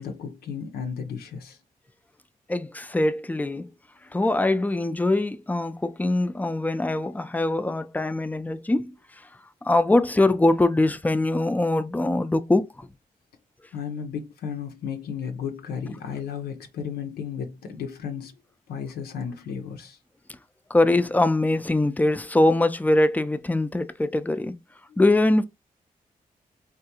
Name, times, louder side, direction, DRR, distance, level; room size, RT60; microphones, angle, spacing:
voice 1, 0.0-1.6 13.7-18.3 18.7-20.0, left 7 dB, 90° left, 0.6 m, -34 dB
voice 2, 2.5-3.7 4.1-8.9 9.6-12.9 20.7-24.6 25.0-25.5, left 2 dB, 10° left, 0.4 m, -22 dB
3.6 x 2.3 x 2.8 m
cardioid pair, 50°, 16 cm